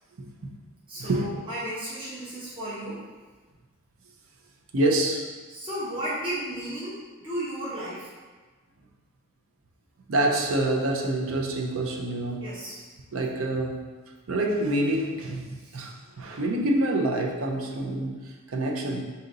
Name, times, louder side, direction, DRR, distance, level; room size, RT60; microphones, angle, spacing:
voice 1, 0.2-0.5 1.0-1.3 4.7-5.3 10.1-12.5 13.1-13.8 14.3-19.0, right 1 dB, 80° right, 1 dB, 0.6 m, -27 dB
voice 2, 0.9-3.0 5.5-8.1 12.4-12.8 15.6-15.8, right 1 dB, 25° right, -9 dB, 1.0 m, -34 dB
3.9 x 2.8 x 3.9 m, 1.3 s
head